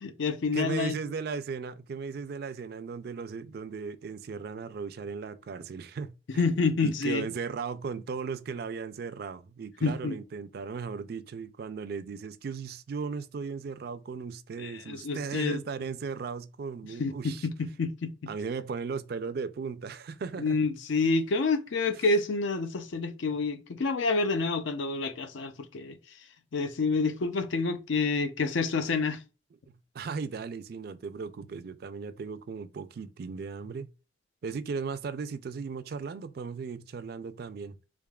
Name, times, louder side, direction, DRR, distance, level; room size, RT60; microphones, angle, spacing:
voice 1, 0.0-0.9 6.4-7.3 9.8-10.2 14.6-15.6 17.0-18.3 20.4-26.0 26.5-29.2, left 3 dB, 80° left, 0.5 m, -28 dB
voice 2, 0.5-6.5 6.8-17.5 18.3-20.6 29.7-33.9 34.4-37.8, right 5 dB, 55° right, 0.3 m, -36 dB
3.6 x 3.5 x 2.3 m
head